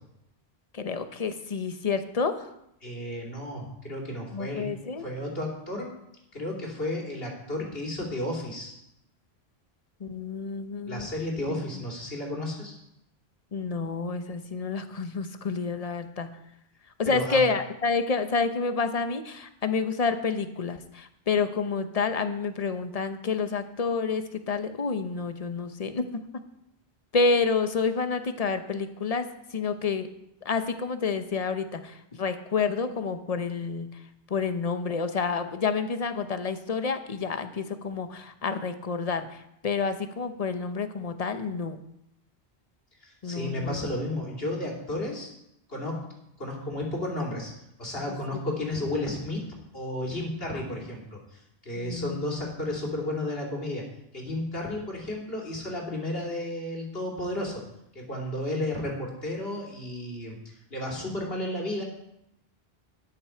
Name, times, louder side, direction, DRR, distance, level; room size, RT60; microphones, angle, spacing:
voice 1, 0.7-2.5 4.3-5.1 10.0-11.1 11.5-11.8 13.5-16.3 17.0-26.1 27.1-29.3 29.5-30.1 30.4-34.0 34.3-41.8 43.2-43.8 51.7-52.2, left 4 dB, 40° left, 9 dB, 0.9 m, -29 dB
voice 2, 2.8-4.6 5.0-5.9 6.3-8.8 10.9-12.8 17.1-17.4 43.0-45.3 45.7-45.9 46.4-47.5 47.8-49.4 49.7-53.8 54.1-57.6 57.9-61.8, left 1 dB, 65° left, -2 dB, 3.1 m, -33 dB
13.0 x 9.8 x 4.5 m, 0.82 s
omnidirectional pair, 1.1 m